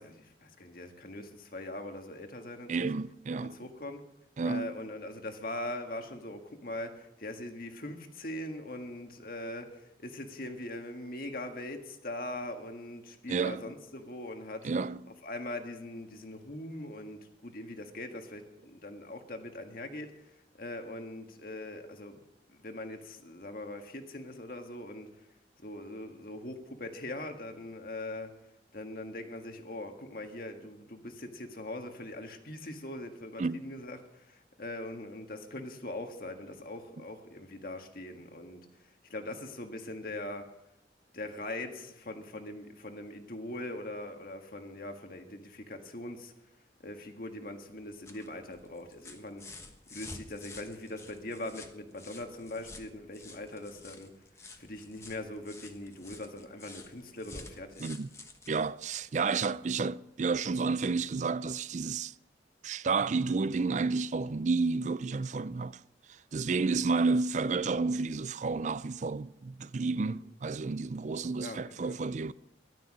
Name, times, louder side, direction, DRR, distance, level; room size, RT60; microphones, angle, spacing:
voice 1, 0.0-2.9 3.4-4.0 4.4-14.7 15.2-20.1 20.6-22.2 22.6-25.1 25.6-28.3 28.7-34.0 34.3-38.6 39.1-40.5 41.1-46.3 46.8-49.4 49.9-54.1 54.6-57.9 70.1-70.2 71.4-72.0, left 1 dB, 55° left, 1.8 m, -41 dB
voice 2, 2.7-3.5 4.4-4.7 13.3-13.6 14.6-15.1 33.4-33.6 57.8-58.1 58.5-62.1 62.6-65.8 66.1-72.3, right 4 dB, 40° right, 0.4 m, -31 dB
sound 1, 47.7-59.7 61.0-61.1, left 3 dB, 15° left, 1.2 m, -51 dB
14.0 x 12.0 x 6.3 m
head